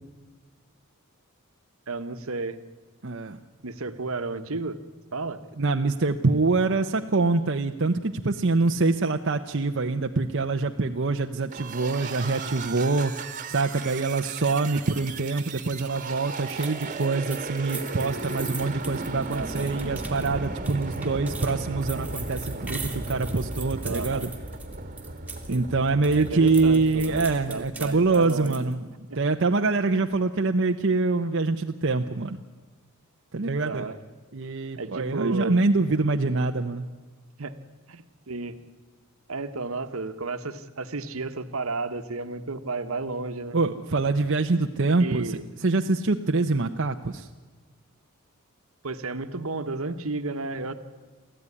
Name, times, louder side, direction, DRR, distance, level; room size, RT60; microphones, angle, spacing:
voice 1, 1.9-2.6 3.6-4.8 5.1-5.4 19.3-19.7 23.8-24.3 25.5-25.6 26.2-28.6 29.1-29.2 29.9-30.0 33.6-34.0 34.8-35.6 37.4-37.5 37.9-38.6 39.3-43.6 45.0-45.4 48.8-50.7, right 3 dB, 70° right, 10 dB, 1.3 m, -32 dB
voice 2, 3.0-3.4 5.6-24.3 25.5-28.9 29.2-32.4 33.3-33.8 34.3-36.9 43.5-47.3, right 3 dB, 55° right, 4 dB, 0.8 m, -25 dB
sound 1, 11.5-28.1, right 2 dB, 35° right, 1.6 m, -36 dB
sound 2, 16.5-25.6 25.9-28.7, right 4 dB, 5° right, 2.3 m, -41 dB
23.5 x 15.0 x 9.8 m, 1.4 s
head